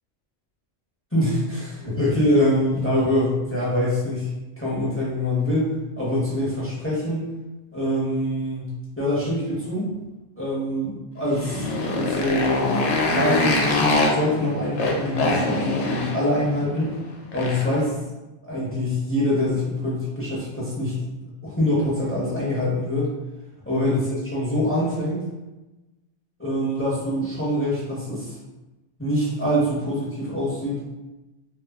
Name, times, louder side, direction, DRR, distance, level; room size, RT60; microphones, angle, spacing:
voice 1, 1.1-4.3 4.6-7.2 7.7-9.9 10.4-12.8 13.0-16.9 17.3-17.9 18.4-21.0 21.4-23.1 23.7-25.2 26.4-28.4 29.0-30.8, left 1 dB, 15° left, -7 dB, 0.5 m, -24 dB
Motorcycle, 11.2-17.8, left 2 dB, 70° left, 0.8 m, -24 dB
2.3 x 2.0 x 3.4 m, 1.0 s
omnidirectional pair, 1.2 m